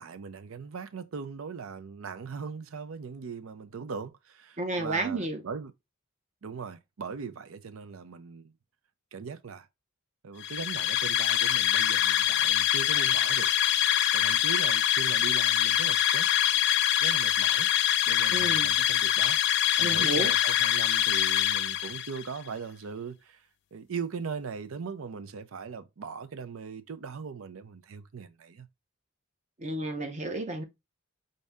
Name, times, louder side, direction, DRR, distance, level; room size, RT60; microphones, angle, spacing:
voice 1, 0.0-5.7 6.4-8.5 9.1-9.7 10.2-13.5 14.1-16.3 17.0-17.7 18.1-19.4 19.8-28.7, right 5 dB, 90° right, 0.5 m, -39 dB
voice 2, 4.6-5.4 18.3-18.7 19.8-20.3 29.6-30.6, right 2 dB, 35° right, 0.7 m, -31 dB
sound 1, 10.4-22.2, left 11 dB, 55° left, 0.3 m, -25 dB
5.3 x 2.7 x 3.4 m
head